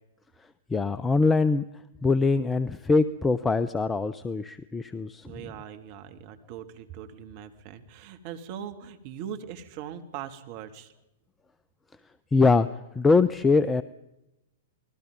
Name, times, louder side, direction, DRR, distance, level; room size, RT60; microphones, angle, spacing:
voice 1, 0.7-1.6 2.0-5.5 12.3-12.7 12.9-13.8, left 4 dB, 10° left, 16 dB, 0.8 m, -23 dB
voice 2, 5.2-10.9, right 9 dB, 45° right, 8 dB, 2.8 m, -40 dB
29.0 x 20.5 x 5.4 m, 0.87 s
figure-of-eight pair, 105°, 0 cm